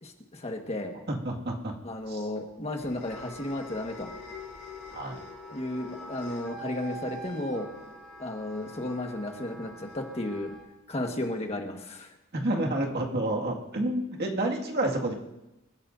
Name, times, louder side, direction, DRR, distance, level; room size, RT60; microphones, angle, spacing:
voice 1, 0.0-0.9 1.8-4.1 5.5-7.7 8.2-10.5 10.9-12.1, left 1 dB, 30° left, 3 dB, 1.5 m, -33 dB
voice 2, 1.1-1.7 2.1-2.3 4.9-5.2 12.3-15.1, right 1 dB, 50° right, 0 dB, 2.1 m, -29 dB
sound 1, 1.9-10.7, left 4 dB, 50° left, 2.9 m, -49 dB
Wind instrument woodwind instrument, 2.9-10.6, right 1 dB, ahead, 4.4 m, -46 dB
27.5 x 14.5 x 2.7 m, 0.94 s
head